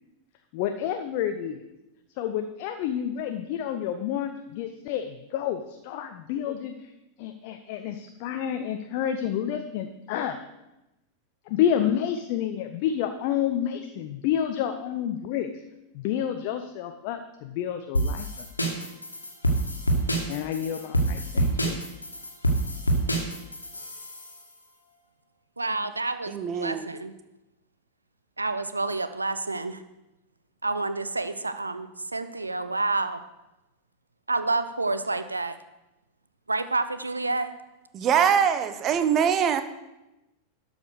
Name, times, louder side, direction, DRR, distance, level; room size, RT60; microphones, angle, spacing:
voice 1, 0.5-1.6 2.2-6.9 7.2-10.4 11.5-15.5 15.9-18.5 20.3-21.8, left 9 dB, 45° left, 0.7 m, -29 dB
sound 1, 17.9-24.3, right 1 dB, 80° left, 1.8 m, -26 dB
voice 2, 25.6-26.3 26.6-27.1 28.4-29.8 30.6-33.2 34.3-35.6 36.5-37.5, right 3 dB, 80° right, 0.7 m, -28 dB
voice 3, 26.3-26.9 37.9-39.6, right 7 dB, 30° right, 0.9 m, -23 dB
12.0 x 5.3 x 6.4 m
figure-of-eight pair, 90°, 0 cm